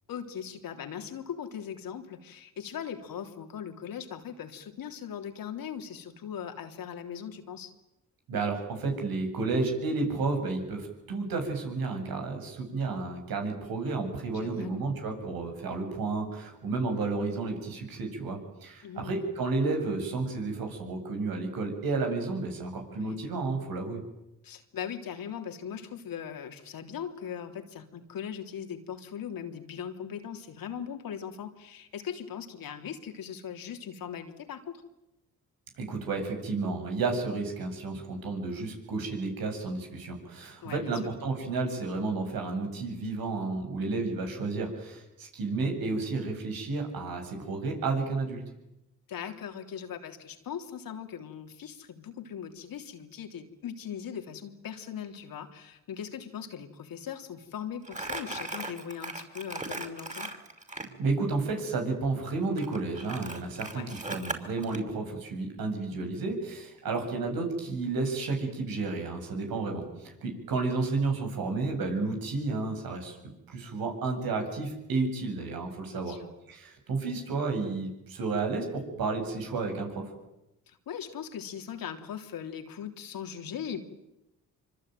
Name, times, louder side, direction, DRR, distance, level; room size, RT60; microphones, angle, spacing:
voice 1, 0.1-7.7 14.3-14.8 18.8-19.2 23.0-23.2 24.4-34.8 40.6-41.0 49.1-60.3 63.7-64.0 66.9-67.1 75.9-76.3 80.7-83.8, left 8 dB, 75° left, 6 dB, 3.5 m, -39 dB
voice 2, 8.3-24.0 35.8-48.4 61.0-73.2 73.5-76.2 76.5-80.1, right 3 dB, 80° right, 4 dB, 7.9 m, -31 dB
Crumpling crinkling, 57.8-60.9 62.6-64.8, right 2 dB, 20° right, 5.8 m, -38 dB
25.5 x 25.0 x 9.3 m, 0.90 s
supercardioid pair, 60°, 35 cm